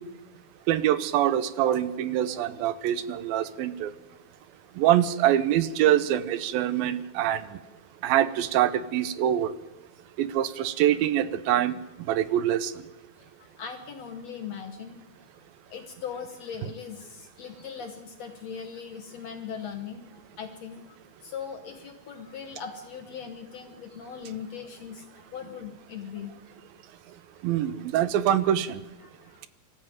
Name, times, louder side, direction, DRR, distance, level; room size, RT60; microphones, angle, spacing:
voice 1, 0.7-3.9 4.8-7.4 8.0-9.5 10.2-11.8 12.1-12.7 27.4-28.7, right 11 dB, 80° right, 14 dB, 2.6 m, -24 dB
voice 2, 13.4-15.0 15.7-21.0 21.2-26.3 27.6-27.7 29.0-29.4, left 7 dB, 60° left, 6 dB, 1.8 m, -40 dB
24.0 x 13.5 x 9.2 m, 1.1 s
omnidirectional pair, 4.2 m